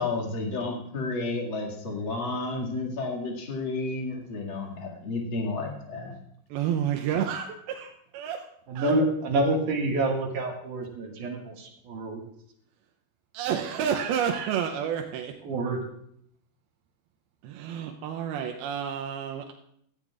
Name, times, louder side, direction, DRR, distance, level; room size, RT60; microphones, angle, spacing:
voice 1, 0.0-6.1, left 3 dB, 40° left, -1 dB, 2.3 m, -31 dB
voice 2, 6.5-8.5 8.8-8.9 13.3-15.3 17.4-19.5, right 8 dB, 80° right, 3 dB, 2.6 m, -30 dB
voice 3, 8.7-12.2 15.4-15.8, right 2 dB, 60° right, 0 dB, 3.1 m, -27 dB
18.0 x 13.5 x 2.5 m, 0.70 s
omnidirectional pair, 4.6 m